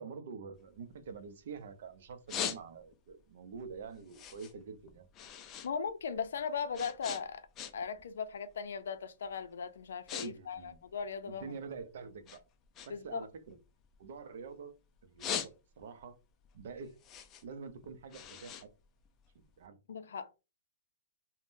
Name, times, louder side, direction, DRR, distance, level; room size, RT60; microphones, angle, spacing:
voice 1, 0.0-5.1 10.2-10.8 11.3-12.4 12.8-13.6 14.0-14.7 15.0-16.2 16.5-17.0 17.4-18.7 19.6-19.8, right 5 dB, 55° right, 0.5 m, -46 dB
sound 1, 0.5-1.7 2.0-3.1 3.5-5.7 6.0-8.0 8.3-8.7 9.3-9.4 9.7-10.3 10.5-11.8 12.2-14.6 15.0-16.0 16.4-19.5, left 8 dB, 20° left, 0.3 m, -42 dB
voice 2, 5.6-7.5 7.7-11.6 12.9-13.2 19.9-20.4, left 6 dB, 80° left, 0.5 m, -38 dB
3.6 x 2.1 x 2.6 m
hypercardioid pair, 170°, 0 cm